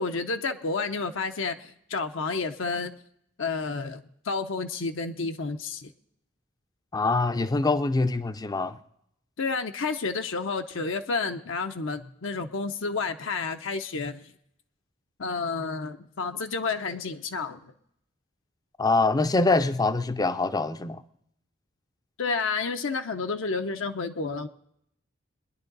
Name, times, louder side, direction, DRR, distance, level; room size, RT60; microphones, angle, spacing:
voice 1, 0.0-2.9 3.4-5.9 9.4-14.3 15.2-17.7 22.2-24.5, left 4 dB, 65° left, 0.7 m, -30 dB
voice 2, 6.9-8.8 18.8-21.0, left 3 dB, 20° left, 0.5 m, -24 dB
22.0 x 10.5 x 3.9 m
head